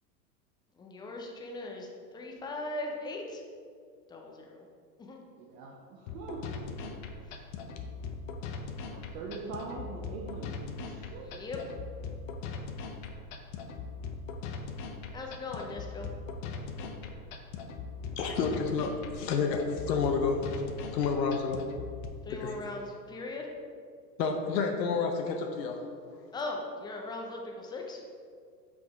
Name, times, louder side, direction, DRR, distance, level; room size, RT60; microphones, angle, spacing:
voice 1, 0.8-3.4 4.1-4.6 5.0-5.2 11.2-11.6 15.1-16.1 22.2-23.5 26.3-28.0, left 2 dB, 10° left, 0 dB, 0.4 m, -39 dB
voice 2, 5.4-6.6 8.9-11.4 18.0-18.2, right 4 dB, 55° right, -2 dB, 0.9 m, -43 dB
sound 1, 6.1-22.1, left 5 dB, 50° left, 0.7 m, -40 dB
voice 3, 18.2-20.4 20.9-21.6 22.3-22.6 24.2-25.9, left 5 dB, 80° left, 3 dB, 0.8 m, -30 dB
5.9 x 5.0 x 3.6 m, 2.1 s
hypercardioid pair, 110°, 49 cm